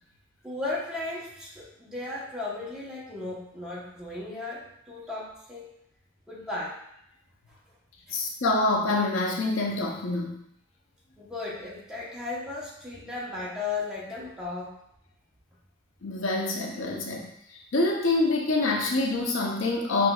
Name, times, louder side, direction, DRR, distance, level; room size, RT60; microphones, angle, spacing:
voice 1, 0.4-5.7 6.3-6.8 8.1-8.2 11.2-14.8, left 3 dB, 5° right, -6 dB, 0.9 m, -35 dB
voice 2, 8.1-10.4 16.0-17.3 17.7-20.1, left 2 dB, 80° left, 0 dB, 0.7 m, -26 dB
5.9 x 2.6 x 2.3 m, 0.73 s
head